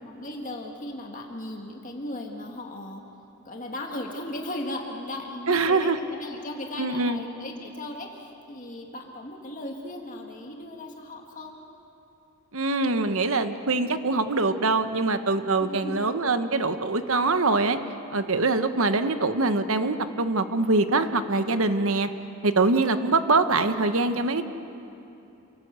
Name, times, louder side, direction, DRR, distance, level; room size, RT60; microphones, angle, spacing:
voice 1, 0.1-3.0 3.5-11.6 15.6-16.1, left 1 dB, 35° left, 1 dB, 1.9 m, -37 dB
voice 2, 5.5-6.0 6.8-7.2 12.5-17.8 18.1-22.1 22.4-24.4, right 3 dB, 65° right, 9 dB, 1.1 m, -23 dB
28.5 x 18.0 x 8.2 m, 2.8 s
head